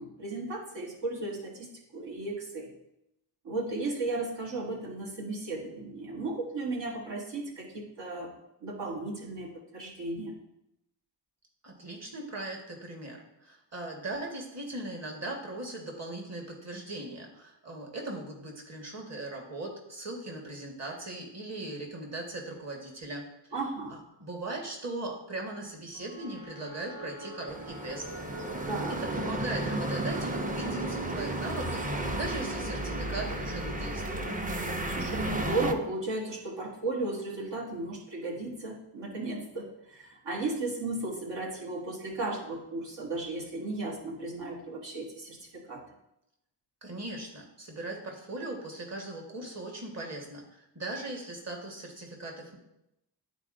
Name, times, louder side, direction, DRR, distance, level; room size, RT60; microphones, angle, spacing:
voice 1, 0.0-2.7 3.4-8.3 8.6-10.3 23.5-23.9 28.7-29.0 34.9-45.8, right 2 dB, 70° right, -1 dB, 1.3 m, -35 dB
voice 2, 11.6-23.3 23.9-28.0 28.4-28.5 29.0-34.2 46.8-52.6, right 2 dB, 35° right, 1 dB, 1.5 m, -39 dB
sound 1, 25.9-36.1, equal, 90° right, 1.5 m, -47 dB
sound 2, 27.5-35.7, right 1 dB, 20° right, 0.6 m, -33 dB
11.5 x 4.1 x 2.6 m, 0.85 s
cardioid pair, 80°, 44 cm